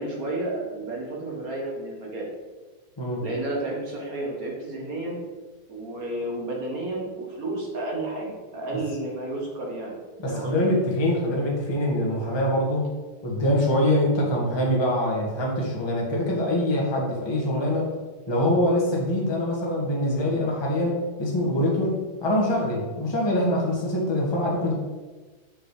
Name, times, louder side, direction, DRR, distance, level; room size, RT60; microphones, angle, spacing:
voice 1, 0.0-2.3 3.2-5.2 5.7-10.7, right 2 dB, 40° right, -1 dB, 1.4 m, -31 dB
voice 2, 10.2-12.9 13.2-17.9 18.3-24.7, left 1 dB, 10° left, -3 dB, 1.2 m, -24 dB
7.5 x 6.2 x 5.0 m, 1.3 s
omnidirectional pair, 3.5 m